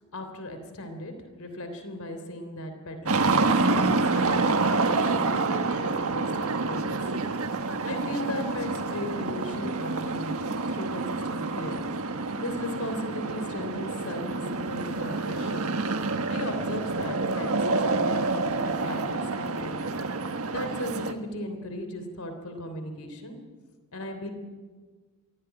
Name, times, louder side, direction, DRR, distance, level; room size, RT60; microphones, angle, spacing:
voice 1, 0.1-7.2 7.8-11.9 12.4-15.7 16.3-19.9 20.5-23.4 23.9-24.3, left 1 dB, 85° left, 7 dB, 3.2 m, -37 dB
sound 1, 3.1-21.1, right 3 dB, 80° right, 1.4 m, -28 dB
23.5 x 16.5 x 9.1 m, 1.4 s
head